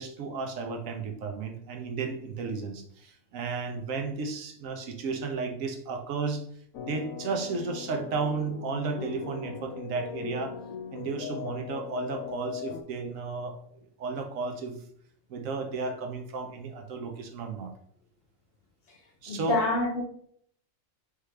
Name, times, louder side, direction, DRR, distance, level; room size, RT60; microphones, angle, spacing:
voice 1, 0.0-6.4 6.8-10.6 10.9-13.7 14.0-14.8 15.3-17.7 19.2-19.6, right 4 dB, 80° right, 1.1 m, -33 dB
sound 1, 6.7-12.8, left 9 dB, 85° left, 1.0 m, -39 dB
voice 2, 19.3-20.0, left 2 dB, 55° left, 0.7 m, -27 dB
4.6 x 3.5 x 3.3 m
omnidirectional pair, 1.4 m